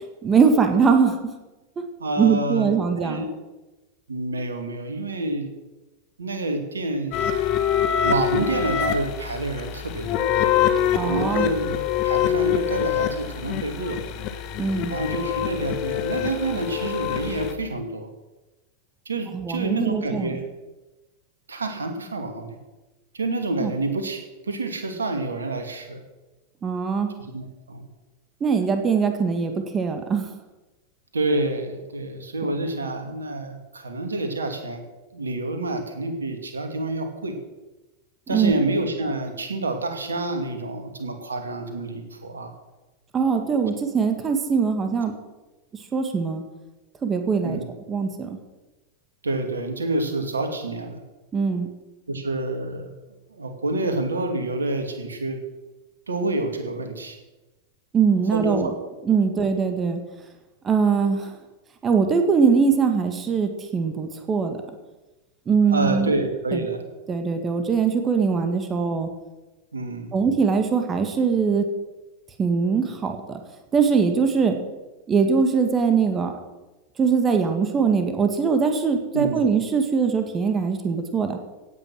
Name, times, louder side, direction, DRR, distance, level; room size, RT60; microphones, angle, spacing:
voice 1, 0.2-1.2 2.2-3.2 10.9-11.5 14.6-15.0 19.3-20.4 23.6-23.7 26.6-27.1 28.4-30.3 38.3-38.5 43.1-45.1 45.9-46.4 47.0-47.6 47.9-48.4 51.3-51.7 57.9-58.7 59.0-60.0 60.6-61.3 61.8-64.6 65.5-66.1 66.5-66.6 67.1-69.1 70.1-71.6 72.4-73.4 73.7-74.6 75.1-76.3 77.0-81.4, right 5 dB, 20° right, 6 dB, 1.9 m, -21 dB
voice 2, 2.0-3.3 4.1-5.5 6.2-7.3 8.0-10.3 11.0-14.1 14.9-18.1 19.1-20.4 21.5-22.6 23.1-24.2 24.5-26.0 27.2-27.9 31.1-34.8 35.1-37.4 38.3-42.5 47.4-47.7 49.2-51.0 52.1-52.9 53.3-55.4 56.1-57.1 58.3-58.7 65.7-66.8 69.7-70.1 79.1-79.5, right 2 dB, 75° right, 5 dB, 2.5 m, -28 dB
sound 1, 7.1-17.5, left 9 dB, 40° left, 1.4 m, -25 dB
16.5 x 9.0 x 6.2 m, 1.1 s
figure-of-eight pair, 90°, 0 cm